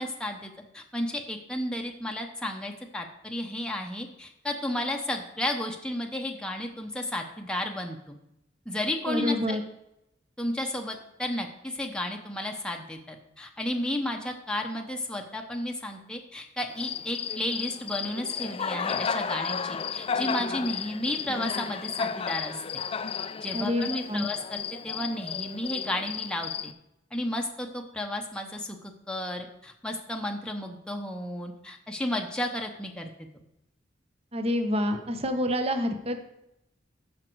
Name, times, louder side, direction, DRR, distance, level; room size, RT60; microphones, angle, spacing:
voice 1, 0.0-8.2 8.7-9.6 10.4-22.5 23.4-26.7 27.1-33.1, left 1 dB, 5° left, 2 dB, 0.8 m, -33 dB
voice 2, 9.1-9.6 23.5-24.2 34.3-36.2, left 1 dB, 35° right, 7 dB, 0.9 m, -27 dB
Cricket, 16.7-26.7, left 6 dB, 30° left, 0.3 m, -33 dB
14.0 x 5.2 x 4.6 m, 0.83 s
head